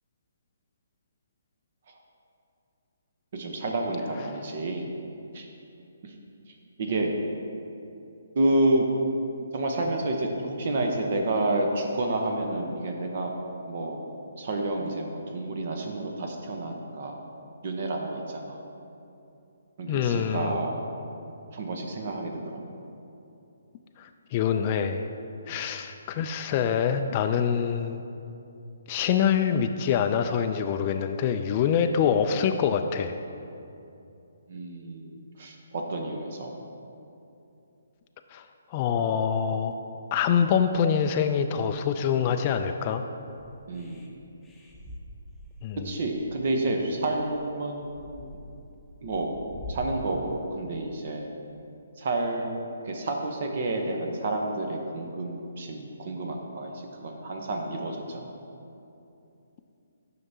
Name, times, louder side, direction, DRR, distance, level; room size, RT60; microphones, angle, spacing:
voice 1, 3.3-4.9 5.3-5.5 6.0-6.1 6.8-7.1 8.3-8.9 9.5-10.3 10.6-13.3 13.7-14.0 14.4-17.2 17.6-18.6 19.8-20.8 21.5-22.6 25.5-25.7 34.5-36.5 43.7-44.2 45.8-48.3 49.0-49.4 49.7-51.4 52.0-58.3, right 2 dB, 50° right, 2 dB, 0.8 m, -29 dB
voice 2, 19.9-20.6 24.0-25.1 25.5-28.0 28.9-33.2 38.3-38.4 38.7-39.8 40.1-43.0 45.6-45.9, left 7 dB, 35° left, 6 dB, 0.3 m, -25 dB
sound 1, 43.4-49.9, left 1 dB, 5° left, 0.8 m, -45 dB
10.5 x 5.8 x 2.7 m, 2.7 s
figure-of-eight pair, 140°, 0 cm